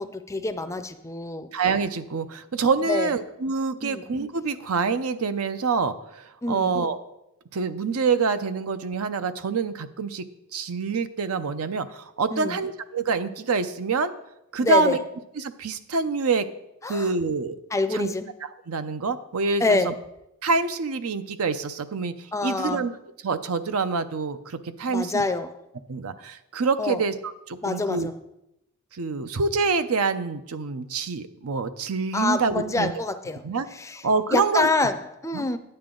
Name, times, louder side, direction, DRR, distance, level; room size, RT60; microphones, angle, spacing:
voice 1, 0.0-1.5 2.8-3.1 3.8-4.0 6.4-6.7 12.3-12.6 14.6-15.0 16.8-17.1 17.7-18.3 19.6-19.9 22.3-22.9 24.9-25.5 26.8-27.0 27.6-28.1 32.1-33.4 33.7-34.0 34.3-35.6, left 3 dB, 15° left, 11 dB, 0.4 m, -26 dB
voice 2, 1.5-7.0 7.5-10.3 10.5-14.1 14.5-15.0 15.4-16.5 16.9-17.6 17.9-18.1 18.7-19.9 20.4-22.1 22.4-22.9 23.2-25.3 25.9-27.1 27.5-28.1 28.9-32.9 33.4-33.7 34.0-34.7 35.3-35.5, right 4 dB, 75° right, 11 dB, 0.6 m, -26 dB
9.6 x 8.8 x 3.8 m, 0.85 s
head